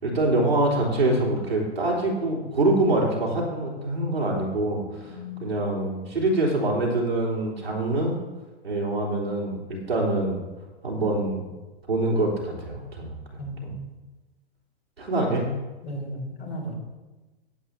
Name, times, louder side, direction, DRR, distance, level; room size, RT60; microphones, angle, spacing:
voice 1, 0.0-8.2 8.6-10.4 10.8-11.4 11.9-13.2 13.6-13.8 15.0-15.5, right 2 dB, 75° right, -4 dB, 3.6 m, -25 dB
voice 2, 5.0-5.4 13.4-13.9 15.8-16.7, equal, 75° left, -2 dB, 3.6 m, -35 dB
17.0 x 8.4 x 2.8 m, 1.2 s
figure-of-eight pair, 105°, 31 cm